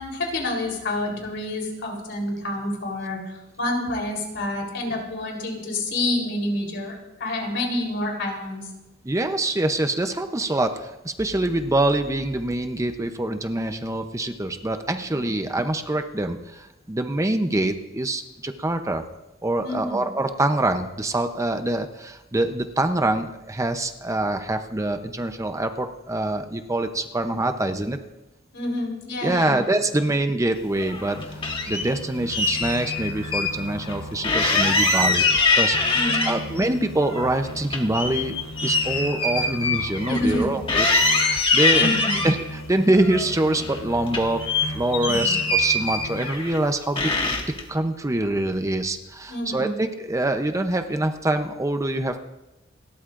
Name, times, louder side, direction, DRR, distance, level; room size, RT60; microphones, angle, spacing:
voice 1, 0.0-3.2 3.6-8.6 15.1-15.2 19.6-20.0 28.5-29.6 35.9-36.4 40.1-40.5 41.7-42.2 45.0-45.3 49.3-49.7, left 1 dB, 65° left, 0 dB, 3.7 m, -28 dB
voice 2, 9.0-19.0 19.4-28.0 29.2-31.2 31.7-35.8 36.2-38.4 38.6-41.9 42.2-44.4 44.7-47.1 47.7-52.2, right 1 dB, 15° right, 6 dB, 0.7 m, -25 dB
sound 1, 30.8-31.9 32.3-33.5 33.8-33.9 34.2-36.6 37.0-40.4 40.7-42.3 42.9-43.8 44.1-46.6 47.0-47.6, left 3 dB, 30° left, 1.8 m, -23 dB
sound 2, 31.1-35.4 35.7-41.4 41.7-46.3, left 1 dB, 85° left, 0.9 m, -37 dB
29.0 x 13.0 x 2.5 m, 0.98 s
head